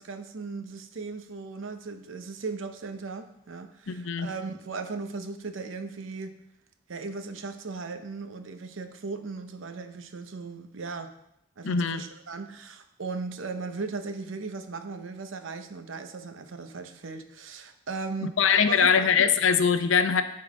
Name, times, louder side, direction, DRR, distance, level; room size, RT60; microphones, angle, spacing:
voice 1, 0.0-6.3 6.9-11.1 11.6-18.4 18.6-19.3, right 4 dB, 80° right, 8 dB, 0.7 m, -37 dB
voice 2, 3.9-4.3 11.6-12.0 18.2-20.2, left 6 dB, 80° left, 10 dB, 0.6 m, -22 dB
10.0 x 3.8 x 4.9 m, 0.80 s
head